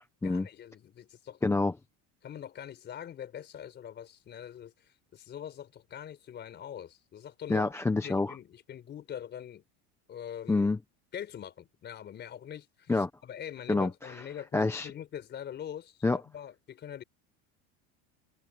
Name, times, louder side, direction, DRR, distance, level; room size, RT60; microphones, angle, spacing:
voice 1, 0.2-1.4 2.2-7.7 8.0-9.6 10.1-10.7 11.1-17.0, left 9 dB, 30° left, 4.6 m, -43 dB
voice 2, 1.4-1.7 7.5-8.3 10.5-10.8 12.9-13.1 13.7-13.9 14.5-14.9 16.0-16.2, left 3 dB, 5° left, 0.8 m, -26 dB
cardioid pair, 155°, 35 cm